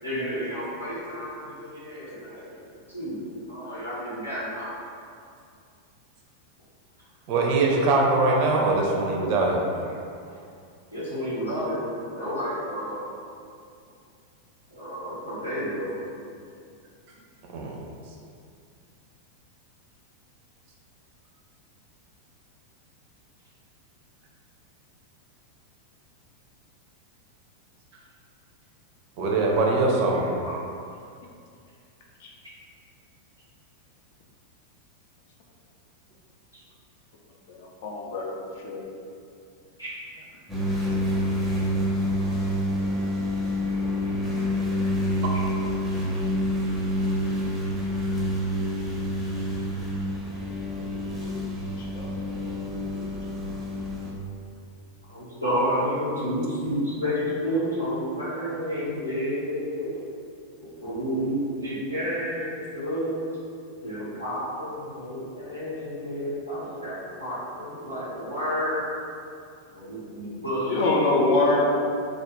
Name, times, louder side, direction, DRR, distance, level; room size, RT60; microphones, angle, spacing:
voice 1, 0.0-2.6 2.9-4.8 9.8-9.9 10.3-10.4 10.9-11.9 12.1-13.0 14.7-16.0 30.1-30.6 39.8-39.9 45.3-45.4 55.1-60.0 60.8-63.2 63.8-68.9 69.6-71.6, equal, 90° left, -12 dB, 1.0 m, -30 dB
voice 2, 7.3-9.7 17.5-17.7 29.2-30.3, right 2 dB, 45° right, -1 dB, 0.4 m, -22 dB
voice 3, 37.5-38.8 44.1-44.6 50.8-50.9 51.2-51.4 51.8-52.1 52.9-53.1 70.2-70.3 70.7-71.6, left 3 dB, 50° left, -1 dB, 0.4 m, -26 dB
sound 1, 40.5-54.1, equal, ahead, 0.6 m, -27 dB
2.3 x 2.0 x 3.0 m, 2.4 s
figure-of-eight pair, 90°, 0 cm